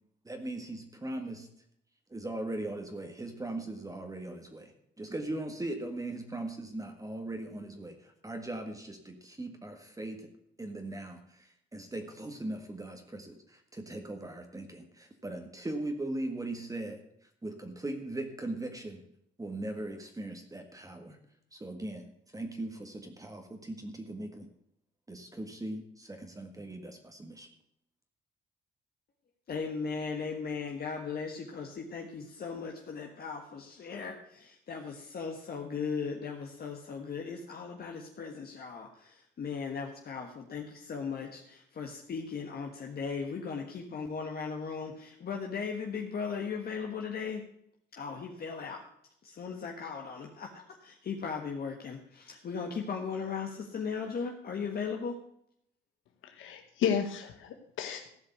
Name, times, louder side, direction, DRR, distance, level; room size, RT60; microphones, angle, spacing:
voice 1, 0.2-1.5 2.1-4.7 5.0-10.3 10.6-17.0 17.4-19.0 19.4-21.2 21.5-22.0 22.3-24.5 25.1-27.5, right 2 dB, 15° right, 5 dB, 1.7 m, -39 dB
voice 2, 29.5-47.4 47.9-48.8 49.2-50.5 50.8-55.2, left 5 dB, 50° left, 1 dB, 1.6 m, -37 dB
voice 3, 56.2-58.2, left 7 dB, 80° left, 4 dB, 1.2 m, -33 dB
15.0 x 5.3 x 8.1 m, 0.72 s
cardioid pair, 90°, 20 cm